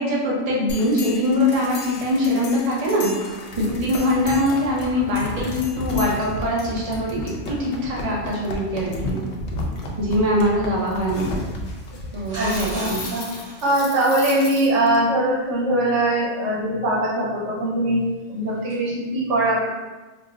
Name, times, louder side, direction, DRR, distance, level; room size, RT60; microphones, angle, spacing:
voice 1, 0.0-3.1 3.6-9.2 10.0-11.3 12.1-13.0, left 1 dB, 40° right, -4 dB, 0.7 m, -22 dB
sound 1, 0.7-15.0, left 2 dB, 75° left, 0.9 m, -33 dB
sound 2, 12.3-14.5 18.7-18.8, right 1 dB, 65° right, 1.6 m, -36 dB
voice 2, 12.3-13.3 13.6-18.0 18.3-19.7, right 1 dB, 90° right, -5 dB, 1.1 m, -21 dB
4.6 x 2.1 x 2.3 m, 1.2 s
omnidirectional pair, 1.2 m